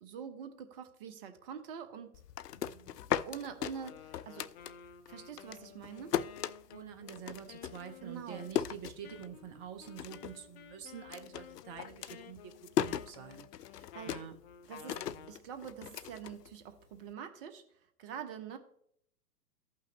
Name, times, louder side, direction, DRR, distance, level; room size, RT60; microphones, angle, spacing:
voice 1, 0.0-2.1 3.2-4.5 5.1-6.2 8.0-8.5 13.7-14.2 14.7-17.6 18.0-18.6, right 7 dB, 35° right, 8 dB, 1.0 m, -45 dB
sound 1, 2.1-5.1 5.4-9.5 9.8-10.4 10.7-17.0, left 10 dB, 75° left, 0.5 m, -38 dB
voice 2, 2.5-3.0 6.7-12.5 12.8-13.5 14.0-14.3 14.9-15.3, right 8 dB, 20° right, 8 dB, 0.5 m, -47 dB
Wind instrument woodwind instrument, 3.7-15.4, left 8 dB, 40° left, 0.7 m, -54 dB
14.0 x 5.8 x 3.1 m, 0.68 s
figure-of-eight pair, 115°, 48 cm